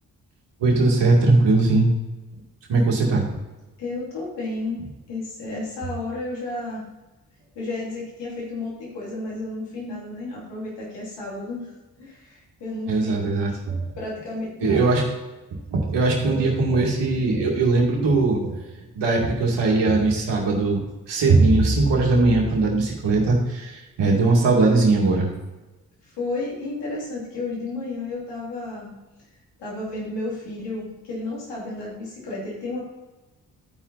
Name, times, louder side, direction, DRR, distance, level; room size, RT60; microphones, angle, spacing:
voice 1, 0.6-1.9 2.7-3.2 12.9-13.8 14.6-15.0 15.7-18.6 19.0-25.3, right 3 dB, 85° right, -1 dB, 2.2 m, -20 dB
voice 2, 3.8-6.9 7.5-13.2 14.0-15.0 26.0-28.9 29.6-32.8, left 2 dB, 85° left, -5 dB, 2.9 m, -32 dB
13.5 x 4.8 x 4.0 m, 1.1 s
supercardioid pair, 40°, 41 cm